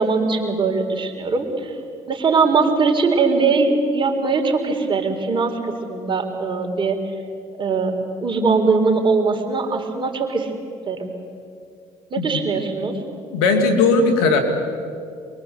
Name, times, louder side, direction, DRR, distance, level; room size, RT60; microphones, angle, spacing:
voice 1, 0.0-1.7 2.1-7.0 7.6-8.0 8.2-10.5 10.9-11.1 12.1-13.0, right 4 dB, 40° right, 3 dB, 4.0 m, -20 dB
voice 2, 13.3-14.4, left 4 dB, 90° left, 5 dB, 2.5 m, -17 dB
23.5 x 22.0 x 8.0 m, 2.4 s
supercardioid pair, 65°, 13 cm